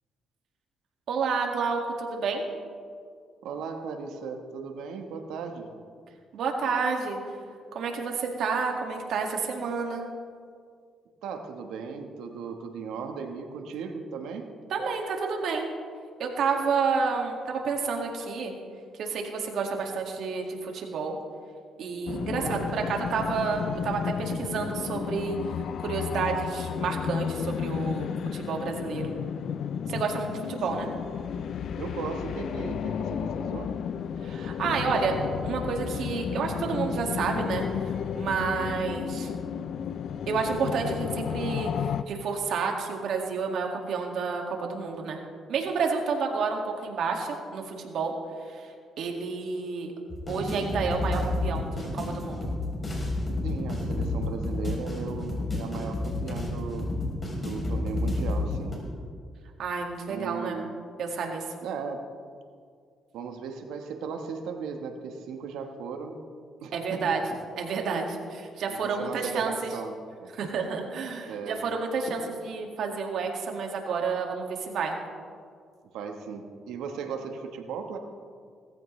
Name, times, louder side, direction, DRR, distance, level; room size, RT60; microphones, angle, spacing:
voice 1, 1.1-2.4 6.3-7.2 7.7-10.1 14.7-15.7 16.2-18.5 18.9-21.2 21.8-29.2 29.9-30.9 34.2-35.2 35.4-39.3 40.3-45.2 45.5-49.9 50.3-52.5 59.6-60.6 61.0-61.5 66.7-67.2 67.5-69.8 70.3-75.0, right 5 dB, 70° right, 2 dB, 2.1 m, -30 dB
voice 2, 3.4-5.7 11.2-14.5 22.3-22.9 31.8-33.7 53.4-56.9 57.4-58.8 60.1-60.7 61.6-62.1 63.1-66.2 66.6-67.1 68.7-70.3 71.3-71.6 75.9-78.0, right 5 dB, 90° right, 5 dB, 1.3 m, -37 dB
sound 1, 22.1-42.0, left 7 dB, 65° left, 0.4 m, -32 dB
sound 2, 50.1-58.8, left 2 dB, 30° left, 3.8 m, -30 dB
17.5 x 14.5 x 3.3 m, 2.1 s
cardioid pair, 90°, 0 cm